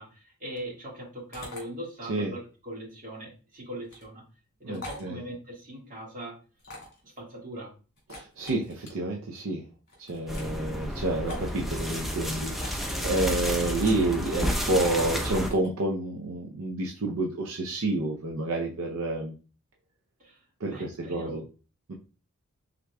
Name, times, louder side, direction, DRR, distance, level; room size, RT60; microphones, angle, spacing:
voice 1, 0.0-4.2 4.6-6.3 7.0-7.7 20.2-21.4, right 1 dB, 35° right, -3 dB, 1.7 m, -40 dB
sound 1, 1.3-1.6 3.8-4.1 4.7-5.1 6.6-7.0 8.0-8.9 9.9-10.5 11.3-11.5 12.5-12.9 13.8-14.1 15.0-15.7, left 2 dB, 50° left, 2.1 m, -44 dB
voice 2, 4.6-5.2 8.1-9.6 10.0-19.3 20.6-21.4 21.9-22.0, right 2 dB, 70° right, 0 dB, 0.6 m, -29 dB
sound 2, 10.3-15.5, equal, ahead, 0.6 m, -31 dB
4.7 x 3.7 x 2.2 m, 0.35 s
head